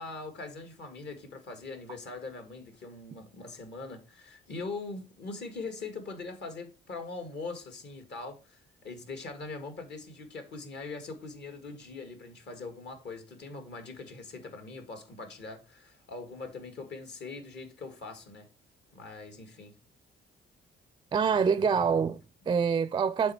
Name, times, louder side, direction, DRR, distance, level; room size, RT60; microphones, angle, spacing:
voice 1, 0.0-18.5 18.9-19.7, left 3 dB, 60° left, 1.9 m, -42 dB
voice 2, 21.1-23.3, right 6 dB, 25° right, 0.4 m, -26 dB
7.5 x 3.7 x 4.5 m
cardioid pair, 90°, 20 cm